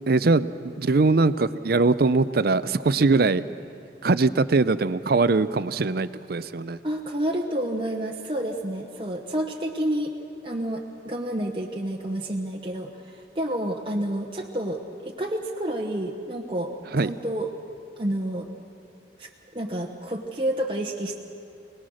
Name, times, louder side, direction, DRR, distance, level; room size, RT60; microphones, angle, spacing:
voice 1, 0.1-0.5 0.8-3.4 4.0-6.8 16.9-17.1, right 3 dB, 55° right, 15 dB, 0.6 m, -21 dB
voice 2, 6.8-10.1 10.4-16.7 17.0-17.5 18.0-18.5 19.2-21.2, right 1 dB, 30° right, 0 dB, 1.1 m, -29 dB
26.0 x 19.0 x 6.4 m, 2.7 s
head